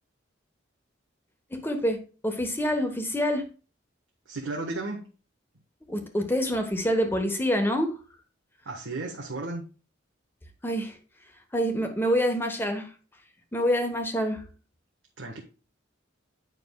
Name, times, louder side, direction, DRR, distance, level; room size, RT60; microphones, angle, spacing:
voice 1, 1.5-3.4 5.8-8.0 10.6-11.0 11.5-12.9 13.5-14.5, equal, 10° left, 1.2 m, -26 dB
voice 2, 4.3-5.0 8.6-9.6 15.2-15.4, right 2 dB, 85° right, 1.4 m, -34 dB
9.3 x 6.0 x 2.3 m
head